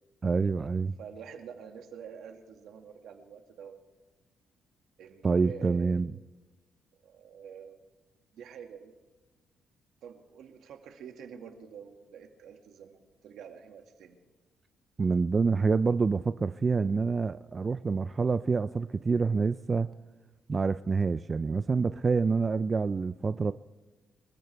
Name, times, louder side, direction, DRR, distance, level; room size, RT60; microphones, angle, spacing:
voice 1, 0.2-0.9 5.2-6.1 15.0-19.9 20.5-23.5, right 4 dB, 35° right, 13 dB, 0.4 m, -27 dB
voice 2, 1.0-3.8 5.0-6.0 7.0-7.8 8.3-8.9 10.0-14.2, right 7 dB, 75° right, 4 dB, 2.1 m, -47 dB
25.5 x 15.0 x 3.5 m, 1.3 s
cardioid pair, 90°, 0 cm